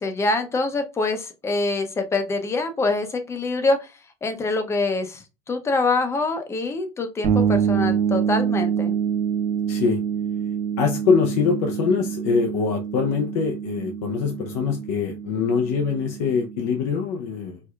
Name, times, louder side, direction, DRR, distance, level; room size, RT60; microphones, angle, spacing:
voice 1, 0.0-3.9 4.2-8.9, left 3 dB, 15° left, 0.6 m, -25 dB
sound 1, 7.2-16.8, right 8 dB, 45° right, 0.8 m, -26 dB
voice 2, 9.7-10.0 10.8-17.6, left 5 dB, 70° left, 0.5 m, -23 dB
4.5 x 2.2 x 2.3 m
supercardioid pair, 145°, 16 cm